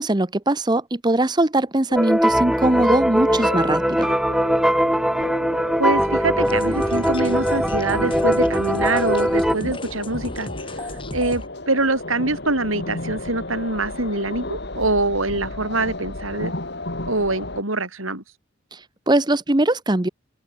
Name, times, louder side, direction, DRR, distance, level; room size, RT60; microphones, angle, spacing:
voice 1, 0.0-4.1 18.7-20.1, right 1 dB, 20° right, 0.9 m, -21 dB
sound 1, 1.9-17.6, left 2 dB, 55° left, 3.5 m, -34 dB
sound 2, 2.0-9.5, equal, ahead, 0.6 m, -21 dB
voice 2, 5.8-10.5 11.1-16.5 17.1-18.2, right 2 dB, 85° right, 7.7 m, -24 dB
sound 3, 6.4-11.5, left 1 dB, 25° left, 3.3 m, -34 dB
head